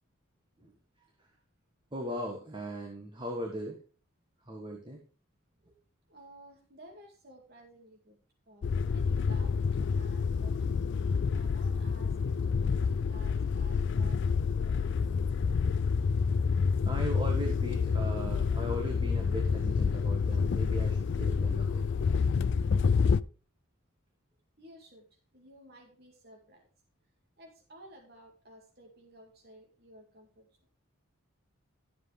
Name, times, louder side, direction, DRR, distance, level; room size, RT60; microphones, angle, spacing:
voice 1, 1.9-3.8 4.4-5.0 5.7-5.8 16.8-21.9, equal, 20° right, 1 dB, 1.5 m, -38 dB
voice 2, 6.1-8.2 8.5-10.8 11.3-15.1 24.6-26.7 27.4-30.5, right 1 dB, 45° right, 1 dB, 2.2 m, -55 dB
sound 1, 8.6-23.2, left 5 dB, 55° left, 0.3 m, -28 dB
12.5 x 7.4 x 3.3 m, 0.38 s
head